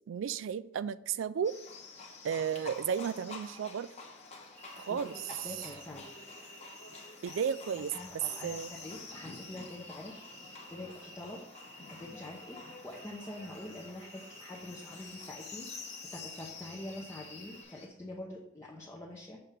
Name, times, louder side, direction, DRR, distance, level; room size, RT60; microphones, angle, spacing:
voice 1, 0.1-1.6 2.2-3.9 4.8-5.5 7.2-8.7, right 7 dB, 70° right, 16 dB, 0.3 m, -34 dB
Livestock farm animals working animals, 1.4-17.9, left 4 dB, 35° left, 1.1 m, -49 dB
voice 2, 4.5-6.2 7.8-10.3 10.7-11.4 11.9-19.4, left 1 dB, 15° left, -4 dB, 0.7 m, -45 dB
sound 1, 4.5-17.6, equal, 90° right, 2.5 m, -54 dB
6.7 x 3.4 x 5.6 m, 0.82 s
head